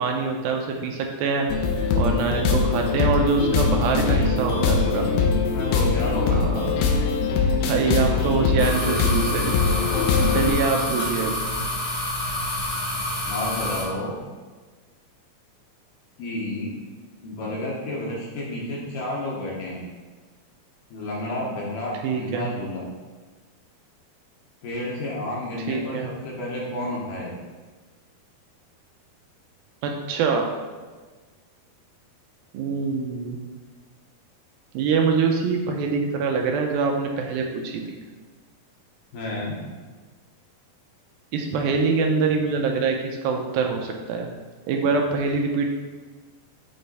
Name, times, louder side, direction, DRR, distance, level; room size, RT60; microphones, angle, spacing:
voice 1, 0.0-1.5 2.0-5.1 6.3-6.8 7.7-9.5 10.3-11.4 22.0-22.5 25.7-26.1 29.8-30.5 32.5-33.4 34.7-38.0 41.3-44.3 44.7-45.7, right 5 dB, 80° right, 2 dB, 2.3 m, -24 dB
sound 1, 1.5-10.5, left 4 dB, 90° left, 2.6 m, -22 dB
voice 2, 4.5-6.5 13.3-14.2 16.2-16.7 17.2-19.8 20.9-22.8 24.6-27.4 39.1-39.6, left 1 dB, 70° left, -4 dB, 2.2 m, -31 dB
sound 2, 8.6-13.8, left 1 dB, 40° left, 1.1 m, -28 dB
7.7 x 3.3 x 4.0 m, 1.4 s
omnidirectional pair, 4.4 m